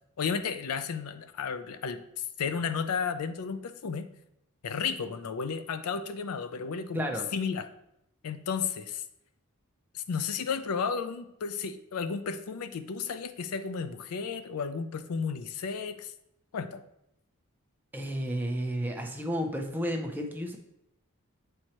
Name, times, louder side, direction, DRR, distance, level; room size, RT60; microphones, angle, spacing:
voice 1, 0.2-4.1 4.6-7.1 7.3-7.7 8.2-9.0 9.9-16.1 16.5-16.8, left 6 dB, 80° left, 11 dB, 0.5 m, -33 dB
voice 2, 6.9-7.3 17.9-20.6, equal, 10° right, 2 dB, 0.6 m, -32 dB
7.7 x 4.5 x 2.9 m, 0.82 s
head